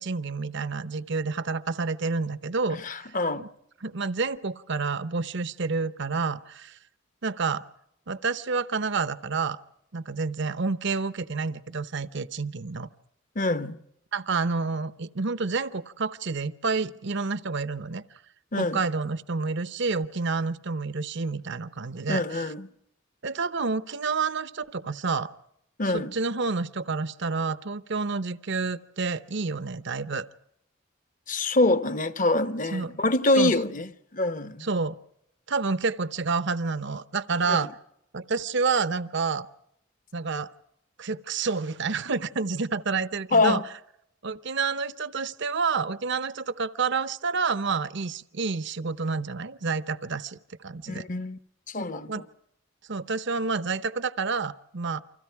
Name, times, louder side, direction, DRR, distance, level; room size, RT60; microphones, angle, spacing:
voice 1, 0.0-3.1 3.4-3.5 3.8-6.8 7.2-7.6 8.1-9.6 9.9-12.9 14.1-18.0 18.6-22.4 23.2-25.3 25.9-30.3 32.7-32.9 33.4-33.5 34.6-35.0 35.5-37.7 38.1-39.5 40.1-40.5 41.0-43.6 44.2-51.1 52.1-52.2 52.9-55.0, right 4 dB, 60° right, 0.8 m, -29 dB
voice 2, 2.7-3.5 13.3-13.8 18.5-18.8 22.1-22.7 25.8-26.1 31.3-34.7 37.5-37.7 43.3-43.6 50.9-51.4 51.7-52.2, left 2 dB, 40° left, 1.0 m, -25 dB
29.5 x 25.0 x 4.6 m
head